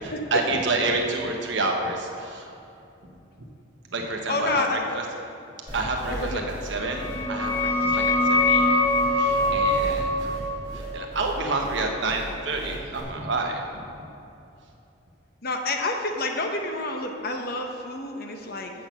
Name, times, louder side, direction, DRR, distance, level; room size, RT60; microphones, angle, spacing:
voice 1, 0.0-2.6 3.9-5.0 5.7-10.4 10.7-14.1, right 2 dB, 65° right, 2 dB, 1.1 m, -29 dB
voice 2, 4.3-4.8 6.1-6.5 15.4-18.7, left 2 dB, 50° left, 3 dB, 0.9 m, -28 dB
sound 1, 5.7-13.0, equal, 20° right, 2.4 m, -37 dB
sound 2, 6.8-12.2, left 2 dB, 10° left, 0.9 m, -24 dB
7.6 x 6.1 x 7.1 m, 2.7 s
head